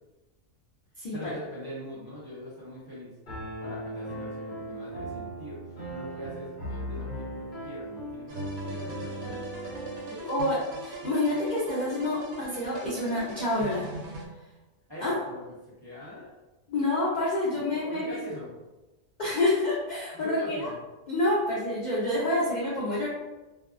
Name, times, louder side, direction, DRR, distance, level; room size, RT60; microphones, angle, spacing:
voice 1, 1.1-3.1 3.6-5.6 5.9-9.4 10.1-10.5 14.9-16.3 17.5-18.5 20.1-20.8, left 1 dB, 30° right, -9 dB, 0.4 m, -42 dB
Piano, 3.3-10.1, right 1 dB, 50° left, 1.2 m, -37 dB
sound 1, 8.3-14.3, right 2 dB, 85° right, 1.1 m, -40 dB
voice 2, 10.3-13.9 15.0-15.2 16.7-18.2 19.2-20.7 21.1-23.1, left 1 dB, 75° left, -7 dB, 0.4 m, -28 dB
2.6 x 2.3 x 2.4 m, 1.1 s
omnidirectional pair, 1.5 m